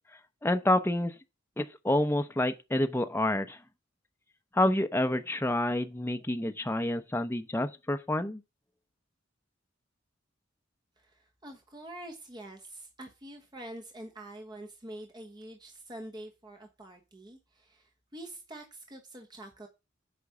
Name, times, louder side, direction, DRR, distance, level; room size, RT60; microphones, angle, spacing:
voice 1, 0.4-1.1 1.6-3.6 4.5-8.4, left 1 dB, 10° left, 0.6 m, -28 dB
voice 2, 11.0-19.7, right 1 dB, 20° right, 1.2 m, -46 dB
8.4 x 5.2 x 7.0 m
head